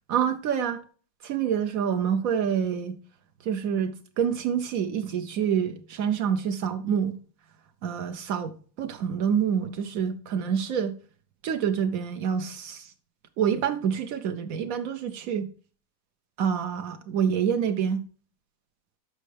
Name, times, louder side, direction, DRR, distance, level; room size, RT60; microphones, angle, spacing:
voice 1, 0.1-0.8 1.2-3.0 3.4-7.2 7.8-10.9 11.4-12.9 13.4-15.5 16.4-18.0, right 8 dB, 85° right, 0.7 m, -27 dB
13.0 x 5.3 x 3.3 m
omnidirectional pair, 2.3 m